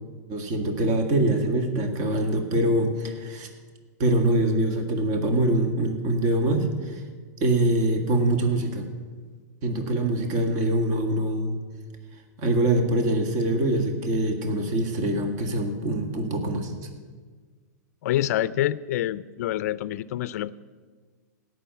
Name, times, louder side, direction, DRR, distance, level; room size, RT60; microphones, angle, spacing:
voice 1, 0.3-3.5 4.0-7.0 7.4-8.9 9.6-11.6 12.4-16.7, right 1 dB, 40° right, 5 dB, 1.9 m, -24 dB
voice 2, 18.0-20.5, left 13 dB, 65° left, 18 dB, 0.5 m, -26 dB
17.0 x 6.4 x 8.2 m, 1.5 s
hypercardioid pair, 135°, 9 cm